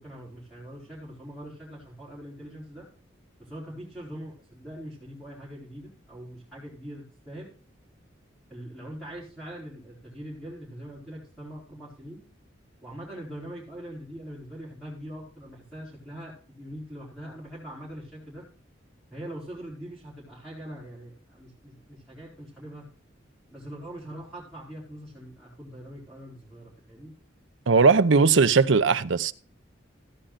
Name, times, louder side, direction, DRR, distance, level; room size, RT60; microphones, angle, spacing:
voice 1, 0.0-2.9 3.4-7.5 8.5-12.2 12.8-18.4 19.1-22.8 23.5-27.1, equal, ahead, 4.3 m, -42 dB
voice 2, 27.7-29.3, right 4 dB, 75° right, 0.7 m, -19 dB
15.0 x 9.9 x 2.5 m
head